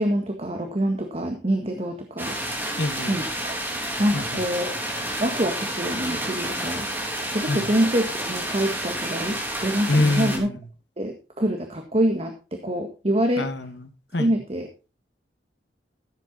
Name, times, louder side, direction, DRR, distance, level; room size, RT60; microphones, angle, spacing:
voice 1, 0.0-2.4 3.1-3.6 4.0-4.8 5.2-6.9 7.3-10.5 11.0-13.5 14.2-14.7, right 1 dB, 35° right, 4 dB, 1.7 m, -25 dB
sound 1, 2.2-10.4, right 1 dB, 10° right, 3.4 m, -30 dB
voice 2, 2.8-3.2 4.1-4.4 7.5-7.7 9.9-10.6 13.4-14.3, left 2 dB, 75° left, 8 dB, 1.7 m, -26 dB
14.5 x 8.5 x 4.1 m, 0.31 s
head